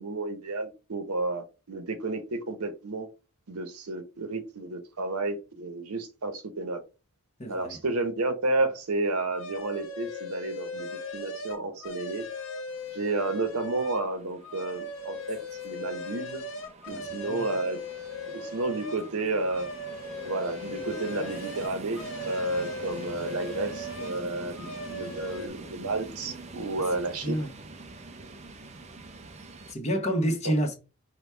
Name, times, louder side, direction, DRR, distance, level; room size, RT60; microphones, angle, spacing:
voice 1, 0.0-3.1 3.5-6.8 7.5-10.9 11.1-12.2 12.9-15.4 15.6-16.4 16.9-17.8 18.3-19.7 20.2-22.0 22.3-27.4 30.4-30.5, right 2 dB, 85° right, 0.8 m, -31 dB
voice 2, 7.4-7.8 16.9-17.5 27.2-27.5 29.7-30.7, equal, 30° left, 0.9 m, -29 dB
sound 1, 9.3-14.1 14.4-19.1 19.4-24.2 24.6-25.5, left 2 dB, 60° left, 1.0 m, -38 dB
sound 2, 12.7-29.7, right 2 dB, 30° right, 0.4 m, -45 dB
5.2 x 2.2 x 4.3 m
head